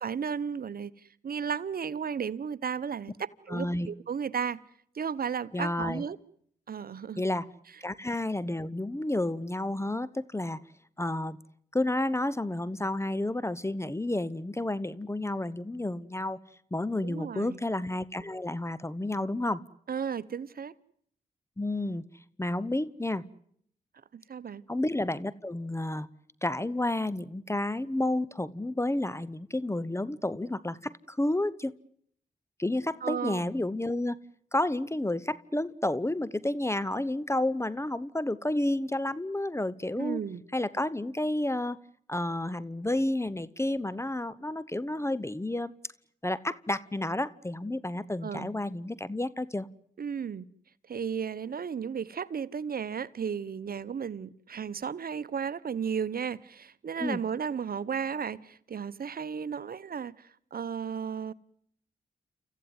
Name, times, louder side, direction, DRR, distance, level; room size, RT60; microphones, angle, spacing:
voice 1, 0.0-4.6 4.9-6.2 6.7-7.2 17.0-17.6 19.9-20.7 24.1-24.6 33.0-33.4 40.0-40.4 48.2-48.5 50.0-50.5 50.9-61.3, right 7 dB, 60° right, 0.9 m, -34 dB
voice 2, 3.5-3.9 5.5-6.0 7.2-7.5 7.8-10.6 11.0-11.4 11.7-16.4 16.7-19.6 21.6-22.0 22.4-23.2 24.7-26.1 26.4-31.7 32.6-34.2 34.5-40.2 40.5-41.8 42.1-45.7 46.2-49.7 57.0-57.2, left 1 dB, 15° left, 1.0 m, -31 dB
28.5 x 14.5 x 9.5 m
supercardioid pair, 45°, 17 cm